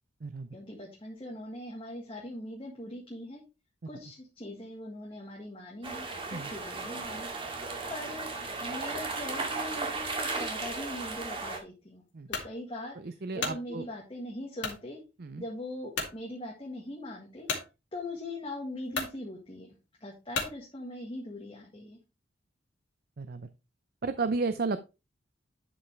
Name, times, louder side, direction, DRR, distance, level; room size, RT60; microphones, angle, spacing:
voice 1, 0.5-3.4 3.9-7.3 7.9-8.3 8.6-12.0 12.3-15.0 15.4-17.5 17.9-19.7 20.0-22.0, left 1 dB, 25° left, -2 dB, 1.8 m, -41 dB
sound 1, 5.8-11.6, right 3 dB, 25° right, 2.0 m, -35 dB
sound 2, 12.3-12.5 13.1-13.6 14.6-14.8 15.4-15.5 15.9-16.2 17.5-17.7 18.5-18.6 18.9-19.2 20.3-20.6, left 4 dB, 65° left, 2.5 m, -33 dB
voice 2, 13.0-13.8 15.2-15.4 23.2-23.5 24.0-24.8, right 3 dB, 50° right, 11 dB, 0.5 m, -33 dB
11.0 x 5.6 x 3.3 m, 0.27 s
head